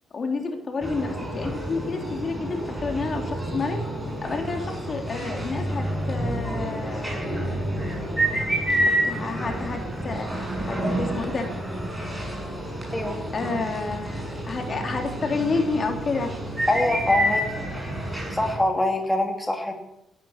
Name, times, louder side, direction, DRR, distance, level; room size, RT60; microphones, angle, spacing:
voice 1, 0.1-3.8 4.2-8.0 8.8-10.3 10.6-11.5 13.3-16.3, left 4 dB, 45° left, 3 dB, 3.3 m, -30 dB
sound 1, 0.8-18.6, right 1 dB, 10° right, 7.4 m, -29 dB
voice 2, 16.7-17.4 18.3-19.7, left 1 dB, 10° left, 2 dB, 2.9 m, -24 dB
17.0 x 11.5 x 7.2 m, 0.85 s
cardioid pair, 90°, 0 cm